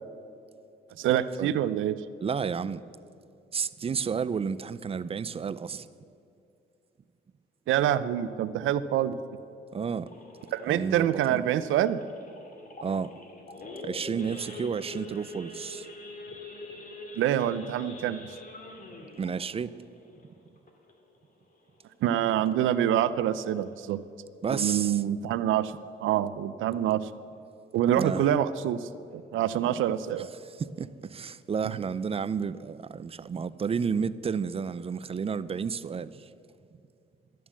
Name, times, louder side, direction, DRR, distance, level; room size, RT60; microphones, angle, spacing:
voice 1, 1.0-2.0 7.7-9.2 10.5-12.0 17.2-18.2 22.0-24.0 24.5-25.7 26.0-27.0 27.7-30.3, right 11 dB, 80° right, 0.5 m, -26 dB
voice 2, 2.2-2.8 3.5-5.9 9.7-10.1 10.7-11.5 12.8-13.1 13.8-15.9 19.2-19.7 24.4-25.0 28.0-28.3 30.6-36.3, right 6 dB, 30° right, 0.4 m, -31 dB
Idling / Accelerating revving vroom / Sawing, 10.1-21.2 21.5-21.8 22.0-22.1 22.6-22.8 23.3-23.4 23.6-24.0, left 2 dB, 45° left, 2.2 m, -45 dB
12.5 x 9.3 x 7.3 m
cardioid pair, 90°, 20 cm